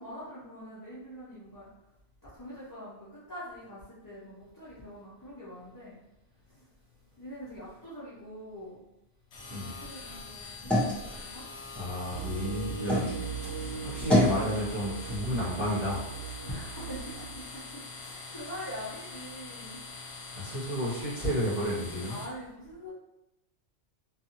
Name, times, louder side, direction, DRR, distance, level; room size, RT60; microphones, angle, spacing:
voice 1, 0.0-1.7 2.2-6.0 6.5-6.6 7.2-8.8 9.5-11.4 13.5-13.9 16.4-19.8 22.1-22.9, equal, 30° left, -9 dB, 0.4 m, -44 dB
sound 1, 9.3-22.3, left 4 dB, 70° left, 0.9 m, -44 dB
sound 2, 9.3-13.1 13.6-14.4, equal, ahead, 0.8 m, -30 dB
voice 2, 11.7-13.2 13.4-16.0 20.3-22.2, equal, 40° right, -11 dB, 1.1 m, -32 dB
sound 3, 12.1-17.4, right 7 dB, 60° right, 0.9 m, -39 dB
2.6 x 2.3 x 2.8 m, 0.90 s
omnidirectional pair, 1.2 m